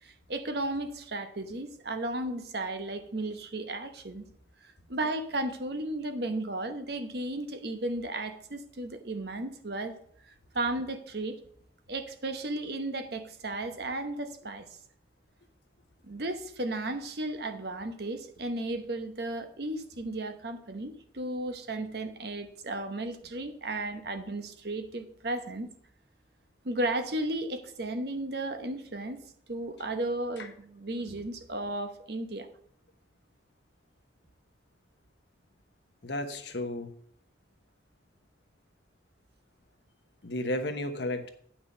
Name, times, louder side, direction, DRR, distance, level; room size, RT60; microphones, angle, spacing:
voice 1, 0.0-4.3 4.9-10.0 10.5-11.4 11.9-14.7 16.0-25.7 26.6-29.2 29.5-32.5, right 2 dB, 60° right, 8 dB, 1.0 m, -34 dB
voice 2, 36.0-36.9 40.2-41.3, left 1 dB, 65° left, 7 dB, 1.1 m, -33 dB
8.6 x 5.9 x 5.5 m, 0.65 s
head